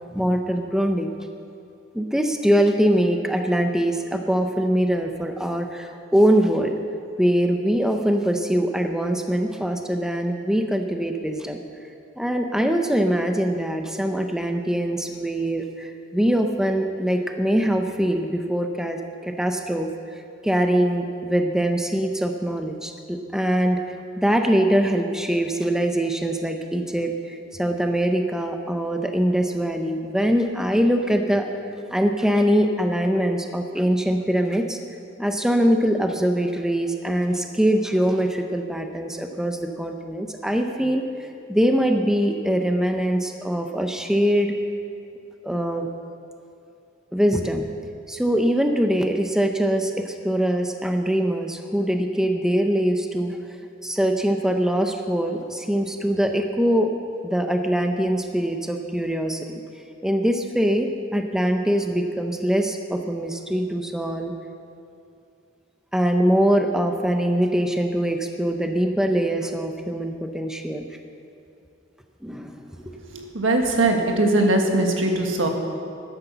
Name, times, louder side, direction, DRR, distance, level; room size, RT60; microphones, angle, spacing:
voice 1, 0.1-1.2 1.9-6.7 7.2-11.6 12.2-23.9 24.2-31.5 31.9-34.8 35.2-41.0 41.5-44.6 45.4-45.9 47.1-47.7 48.1-53.4 53.8-56.9 57.2-59.6 60.0-64.4 65.9-70.9 72.2-72.6, equal, 5° right, 4 dB, 0.6 m, -23 dB
voice 2, 73.1-75.5, right 2 dB, 80° right, 2 dB, 1.7 m, -21 dB
12.0 x 10.0 x 6.8 m, 2.6 s
head